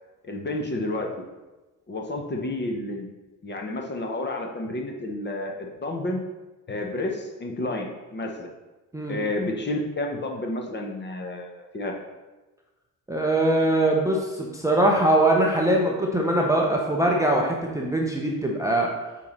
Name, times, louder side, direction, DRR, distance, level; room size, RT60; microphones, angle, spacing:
voice 1, 0.2-1.1 1.9-3.1 3.4-6.2 6.7-8.5 9.1-11.9, left 1 dB, 20° left, 2 dB, 0.9 m, -30 dB
voice 2, 13.1-18.9, right 1 dB, 5° right, -1 dB, 0.7 m, -22 dB
8.2 x 2.8 x 4.1 m, 1.1 s
figure-of-eight pair, 50°, 49 cm